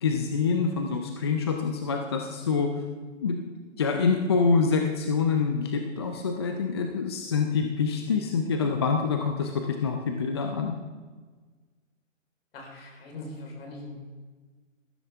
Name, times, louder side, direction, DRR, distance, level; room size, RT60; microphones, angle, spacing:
voice 1, 0.0-2.7 3.2-3.4 3.8-10.8, left 5 dB, 20° left, 4 dB, 0.4 m, -26 dB
voice 2, 12.5-14.0, left 2 dB, 50° left, 0 dB, 4.3 m, -41 dB
14.0 x 13.0 x 3.5 m, 1.4 s
hypercardioid pair, 145°, 38 cm